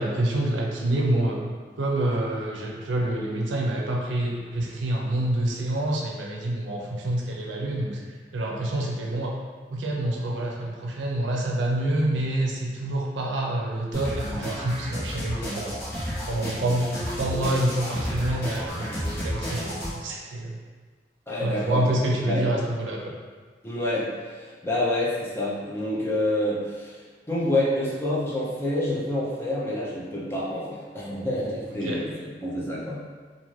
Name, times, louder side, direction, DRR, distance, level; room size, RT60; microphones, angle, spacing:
voice 1, 0.0-1.4 1.8-8.0 8.3-9.3 9.7-15.8 16.3-20.6 21.4-23.1 31.8-32.0, right 1 dB, 75° right, -2 dB, 0.5 m, -27 dB
sound 1, 13.9-19.9, equal, 55° left, 1.0 m, -32 dB
voice 2, 21.3-21.9 22.3-22.4 23.6-33.0, left 1 dB, 15° left, -7 dB, 0.5 m, -28 dB
2.5 x 2.5 x 3.1 m, 1.5 s
head